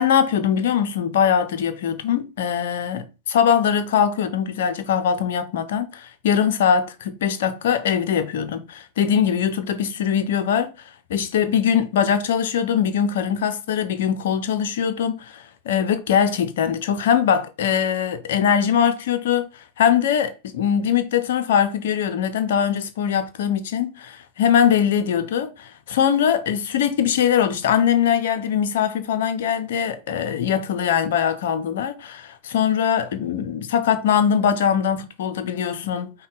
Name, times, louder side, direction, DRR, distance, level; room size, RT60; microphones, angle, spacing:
voice 1, 0.0-10.7 11.1-19.5 19.8-36.1, left 8 dB, 55° left, 0.7 m, -21 dB
5.2 x 2.3 x 3.9 m
figure-of-eight pair, 90°, 0 cm